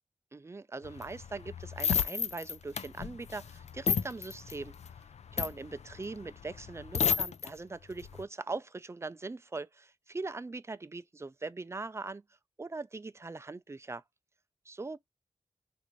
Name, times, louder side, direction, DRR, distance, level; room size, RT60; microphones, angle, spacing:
voice 1, 0.3-4.7 5.3-12.2 12.6-14.0 14.7-15.0, right 3 dB, 20° right, 0.4 m, -41 dB
sound 1, 0.8-7.5 7.9-8.2, left 6 dB, 70° left, 0.4 m, -32 dB
3.3 x 2.6 x 3.0 m
wide cardioid pair, 70°, 12 cm